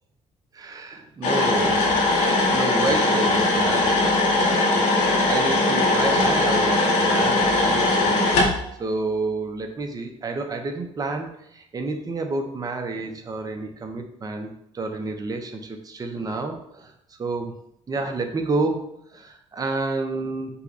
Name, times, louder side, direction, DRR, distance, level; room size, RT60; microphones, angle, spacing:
voice 1, 0.5-8.1 8.8-16.9 17.2-17.5 17.9-20.6, right 3 dB, 30° right, 5 dB, 0.8 m, -30 dB
sound 1, 1.2-8.5, left 2 dB, 85° left, 1.3 m, -20 dB
5.5 x 2.3 x 4.0 m, 0.76 s
cardioid pair, 100°, 13 cm